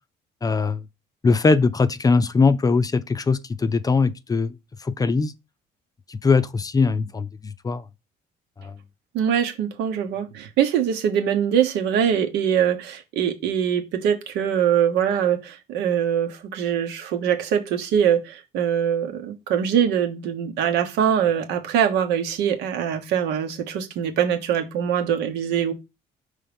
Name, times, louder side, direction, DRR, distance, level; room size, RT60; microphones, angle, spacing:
voice 1, 0.4-0.8 1.2-4.5 4.8-5.3 6.1-7.8 8.6-8.7, left 4 dB, 20° left, 0.5 m, -21 dB
voice 2, 9.1-25.7, right 8 dB, 85° right, 1.3 m, -23 dB
5.5 x 3.4 x 5.1 m
cardioid pair, 110°, 17 cm